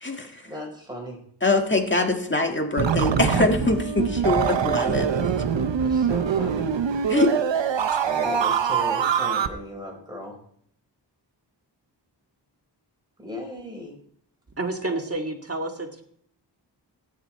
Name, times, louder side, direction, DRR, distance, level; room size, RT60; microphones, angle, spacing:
voice 1, 0.4-1.2 5.8-6.7 8.1-10.4 13.2-14.0, left 1 dB, 10° right, -1 dB, 4.4 m, -36 dB
voice 2, 1.4-5.4 7.1-7.3, left 2 dB, 25° left, 3 dB, 1.9 m, -23 dB
sound 1, 2.8-9.5, right 7 dB, 90° right, 0.8 m, -24 dB
voice 3, 14.6-16.0, right 2 dB, 35° right, 2 dB, 2.1 m, -29 dB
16.0 x 9.7 x 4.3 m, 0.65 s
wide cardioid pair, 85°, 43 cm